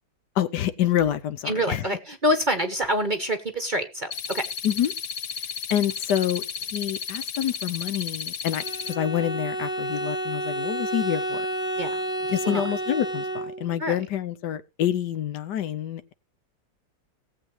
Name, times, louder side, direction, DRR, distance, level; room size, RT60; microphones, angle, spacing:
voice 1, 0.4-1.8 4.6-4.9 5.7-6.4 6.7-11.5 12.3-13.3 13.6-16.1, left 10 dB, 75° left, 1.3 m, -27 dB
voice 2, 1.4-4.4 11.8-12.0 12.4-12.7 13.8-14.0, equal, 35° right, 0.9 m, -26 dB
sound 1, 4.1-8.9, left 6 dB, 60° left, 0.7 m, -33 dB
Bowed string instrument, 8.6-13.8, right 1 dB, 5° right, 0.8 m, -30 dB
18.5 x 7.8 x 3.1 m
omnidirectional pair, 1.9 m